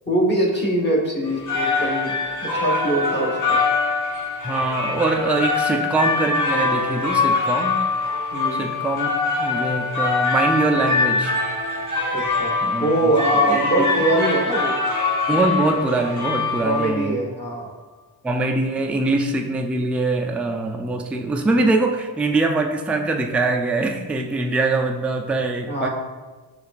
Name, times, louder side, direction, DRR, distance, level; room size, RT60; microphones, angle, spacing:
voice 1, 0.1-3.6 8.3-8.6 12.1-14.8 16.6-17.7 25.7-25.9, right 1 dB, 20° left, -2 dB, 1.4 m, -23 dB
sound 1, 1.2-17.1, left 3 dB, 40° left, 1.4 m, -23 dB
voice 2, 4.4-7.8 8.6-11.4 12.6-12.9 13.5-13.9 15.3-17.2 18.2-25.9, right 2 dB, 5° right, 3 dB, 0.3 m, -23 dB
6.3 x 2.5 x 2.5 m, 1.3 s
cardioid pair, 45°, 47 cm